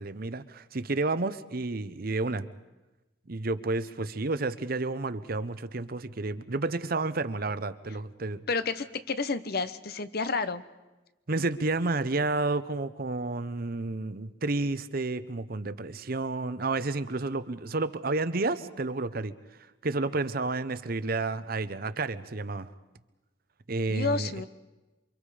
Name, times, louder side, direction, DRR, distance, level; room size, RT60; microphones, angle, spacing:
voice 1, 0.0-2.5 3.3-8.4 11.3-19.3 19.8-22.7 23.7-24.3, right 3 dB, 50° right, 13 dB, 0.9 m, -30 dB
voice 2, 8.5-10.6 23.9-24.5, left 4 dB, 55° left, 12 dB, 1.0 m, -30 dB
28.5 x 24.5 x 5.0 m, 1.1 s
head